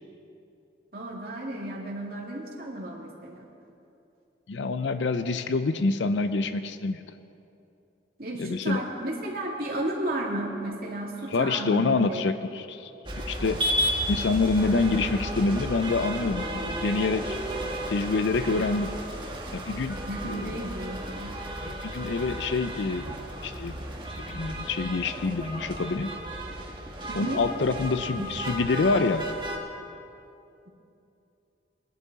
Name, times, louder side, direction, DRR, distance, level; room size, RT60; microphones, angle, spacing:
voice 1, 0.9-3.4 8.2-12.2 20.0-21.3 27.1-27.4 27.9-28.3, right 1 dB, 55° right, -2 dB, 2.2 m, -33 dB
voice 2, 4.5-7.0 8.4-8.8 11.3-12.9 13.2-13.6 14.1-17.4 17.9-19.0 19.5-20.5 21.6-23.2 23.4-23.8 24.1-26.2 27.2-29.2, left 3 dB, 80° left, 11 dB, 0.5 m, -26 dB
sound 1, 13.1-29.6, equal, 25° right, 1.3 m, -33 dB
20.5 x 11.0 x 4.0 m, 2.7 s
head